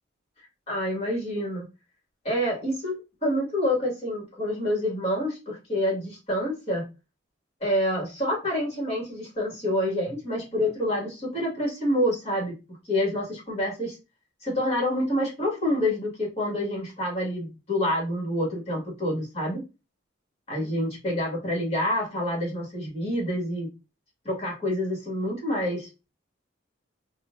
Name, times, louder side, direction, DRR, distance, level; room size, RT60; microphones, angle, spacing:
voice 1, 0.7-1.7 2.2-6.9 7.6-14.0 14.4-19.6 20.5-23.7 24.2-26.1, left 1 dB, 30° left, -3 dB, 2.1 m, -27 dB
4.3 x 2.6 x 2.6 m, 0.28 s
head